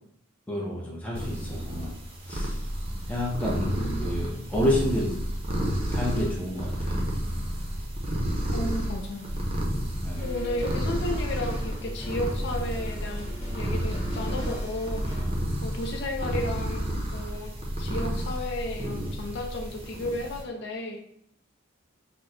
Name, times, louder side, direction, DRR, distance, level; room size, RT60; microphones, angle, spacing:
voice 1, 0.5-2.0 2.3-2.6 3.1-5.2 5.8-7.0 10.0-10.3, left 1 dB, 5° left, -3 dB, 0.6 m, -29 dB
sound 1, 1.1-20.4, equal, 30° right, 0.6 m, -31 dB
voice 2, 3.8-4.1 8.5-9.3 10.2-15.1 15.6-21.0, left 1 dB, 60° left, 3 dB, 0.4 m, -33 dB
sound 2, 10.1-15.3, left 1 dB, 30° left, 1.1 m, -38 dB
4.4 x 2.1 x 2.6 m, 0.68 s
head